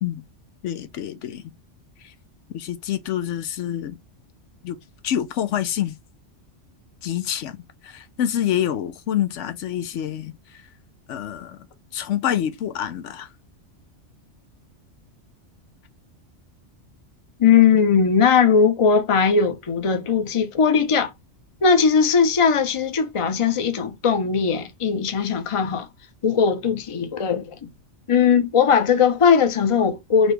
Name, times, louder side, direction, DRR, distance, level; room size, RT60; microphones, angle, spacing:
voice 1, 0.6-1.5 2.0-2.1 2.5-4.0 4.6-4.8 5.0-6.0 7.0-7.6 7.8-10.6 11.1-11.7 11.9-13.3, left 10 dB, 80° left, 1.0 m, -27 dB
voice 2, 17.4-21.1 21.6-25.9 26.2-27.7 28.1-30.3, left 6 dB, 35° left, 0.7 m, -19 dB
4.3 x 2.9 x 3.2 m
omnidirectional pair, 1.2 m